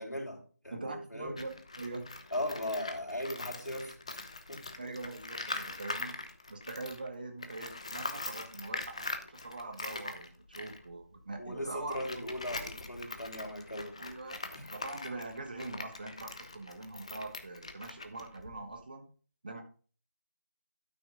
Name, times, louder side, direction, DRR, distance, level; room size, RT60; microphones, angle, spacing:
voice 1, 0.0-1.4 2.3-4.2 4.5-4.6 11.4-14.0 14.5-14.7, left 1 dB, 80° left, 0 dB, 4.0 m, -38 dB
voice 2, 0.7-2.1 4.8-6.1 6.5-12.2 14.0-14.4 14.7-19.1 19.4-19.6, right 2 dB, 30° right, 5 dB, 1.3 m, -43 dB
Tools, 1.3-7.1 7.4-18.8, left 3 dB, 20° left, 0.6 m, -43 dB
12.0 x 6.1 x 3.7 m, 0.39 s
figure-of-eight pair, 165°, 9 cm